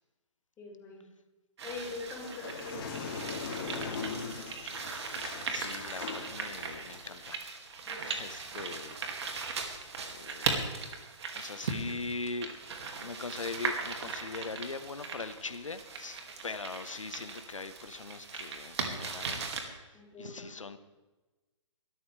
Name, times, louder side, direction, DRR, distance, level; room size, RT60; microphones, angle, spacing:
voice 1, 0.6-1.1 1.6-2.9 7.9-8.2 19.9-20.5, left 3 dB, 15° left, -4 dB, 5.3 m, -43 dB
sound 1, 1.6-19.6, right 4 dB, 60° right, 2.5 m, -38 dB
sound 2, 2.1-7.3, left 5 dB, 45° left, 2.8 m, -40 dB
voice 2, 4.6-7.5 8.0-9.5 10.1-11.0 11.3-12.6 13.0-19.5 19.7-20.8, left 4 dB, 85° left, 10 dB, 1.2 m, -41 dB
21.5 x 12.5 x 3.4 m, 1.2 s
figure-of-eight pair, 130°, 16 cm